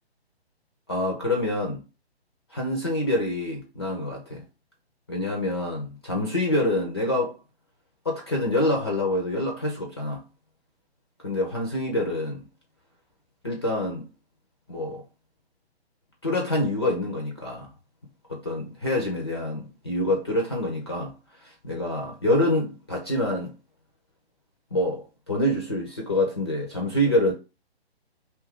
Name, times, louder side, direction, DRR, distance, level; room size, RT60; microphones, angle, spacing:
voice 1, 0.9-1.8 2.5-4.4 5.1-7.3 8.0-10.2 11.2-12.4 13.4-14.1 14.7-15.0 16.2-17.7 18.3-21.2 21.4-23.5 24.7-27.3, left 1 dB, 25° left, 0.3 m, -26 dB
2.6 x 2.3 x 3.4 m
figure-of-eight pair, 140°, 33 cm